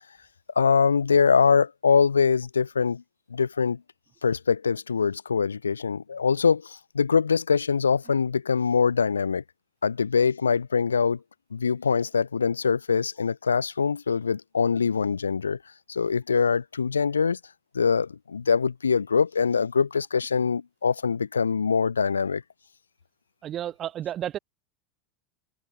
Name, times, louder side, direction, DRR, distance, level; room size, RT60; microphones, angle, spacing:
voice 1, 0.6-3.0 3.3-3.8 4.2-9.4 9.8-11.2 11.5-15.6 15.9-17.4 17.7-22.4, left 5 dB, 90° left, 2.7 m, -23 dB
voice 2, 23.4-24.4, right 11 dB, 40° right, 3.6 m, -31 dB
hypercardioid pair, 85°, 0 cm